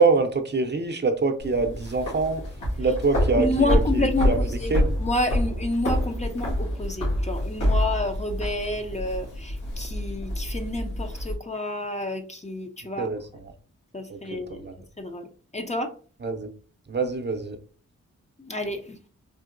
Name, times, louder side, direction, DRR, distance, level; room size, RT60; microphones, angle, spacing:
voice 1, 0.0-2.4 2.8-4.9 13.0-13.5 14.1-14.7 16.2-16.5 16.9-17.6, right 4 dB, 35° right, 5 dB, 0.7 m, -25 dB
sound 1, 1.4-11.3, left 1 dB, 90° left, 1.7 m, -27 dB
voice 2, 3.4-4.3 4.6-4.7 5.0-13.1 13.9-14.6 15.0-15.2 15.5-15.9 18.4-19.0, left 2 dB, 20° left, 4 dB, 0.6 m, -29 dB
3.8 x 2.7 x 2.6 m, 0.40 s
cardioid pair, 50°, 31 cm